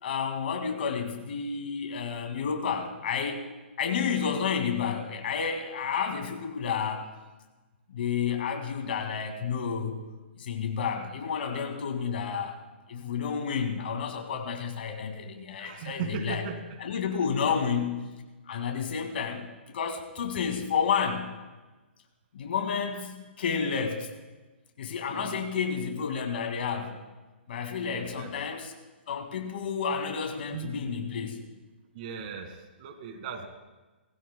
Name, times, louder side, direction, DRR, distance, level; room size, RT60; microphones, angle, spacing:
voice 1, 0.0-3.4 3.8-7.0 7.9-10.0 10.4-12.6 12.9-16.4 16.8-18.1 18.5-21.3 22.3-24.1 24.8-27.0 27.5-28.7 29.1-31.4, left 6 dB, 60° left, 5 dB, 2.0 m, -30 dB
voice 2, 15.6-16.8 25.1-25.4 27.8-28.3 30.5-30.8 31.9-33.5, right 6 dB, 45° right, 6 dB, 1.7 m, -38 dB
20.0 x 15.5 x 2.2 m, 1.2 s
figure-of-eight pair, 120°, 6 cm